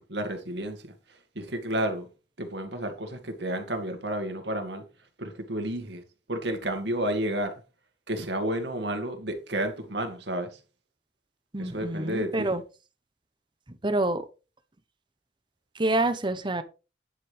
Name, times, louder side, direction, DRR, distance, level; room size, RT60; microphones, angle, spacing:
voice 1, 0.0-2.1 2.4-4.8 5.2-6.0 6.3-7.5 8.1-10.6 11.6-12.5, right 1 dB, 75° right, 2.1 m, -31 dB
voice 2, 11.5-12.6 13.7-14.3 15.7-16.6, right 2 dB, 25° right, 0.9 m, -27 dB
9.8 x 8.3 x 3.4 m
head